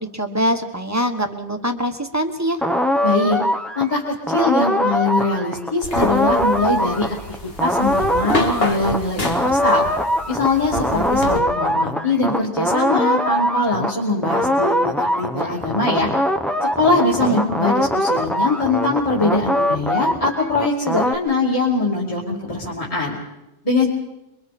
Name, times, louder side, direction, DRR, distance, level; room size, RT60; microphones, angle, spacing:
voice 1, 0.1-2.6 17.2-17.5, equal, 15° right, 6 dB, 1.4 m, -23 dB
sound 1, 2.6-13.9 14.2-21.2, equal, ahead, 1.0 m, -22 dB
voice 2, 3.0-3.4 3.8-7.2 7.6-9.9 10.3-16.1 16.6-23.2 23.6-23.9, left 2 dB, 35° left, -4 dB, 3.0 m, -22 dB
sound 2, 5.8-11.4, left 2 dB, 65° left, 2.1 m, -28 dB
27.5 x 23.0 x 4.3 m, 0.99 s
omnidirectional pair, 1.1 m